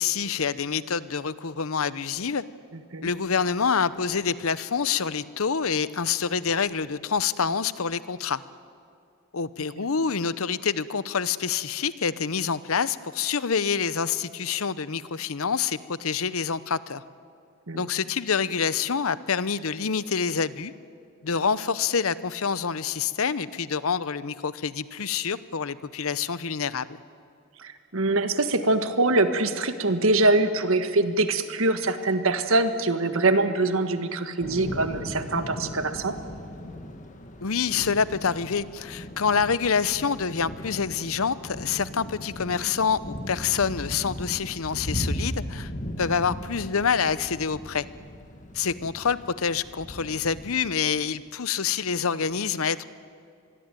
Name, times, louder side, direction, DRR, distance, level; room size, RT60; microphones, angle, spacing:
voice 1, 0.0-2.4 3.0-8.4 9.3-17.0 17.7-20.7 21.2-27.0 37.4-45.7 46.0-47.9 48.5-52.9, left 6 dB, 80° left, 16 dB, 0.8 m, -27 dB
voice 2, 27.6-36.1, right 2 dB, 75° right, 9 dB, 1.6 m, -23 dB
Thunder / Rain, 34.4-50.5, equal, 35° left, 2.0 m, -37 dB
26.0 x 21.5 x 9.1 m, 2.4 s
head